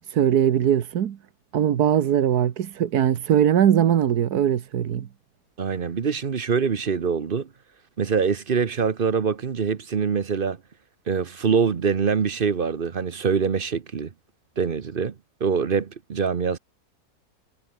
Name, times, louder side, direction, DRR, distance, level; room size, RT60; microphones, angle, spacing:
voice 1, 0.0-1.2 1.5-5.1, right 9 dB, 80° right, 1.6 m, -21 dB
voice 2, 5.6-7.5 8.0-10.6 11.1-14.1 14.6-15.1 15.4-16.6, right 6 dB, 40° right, 1.0 m, -24 dB
omnidirectional pair, 1.6 m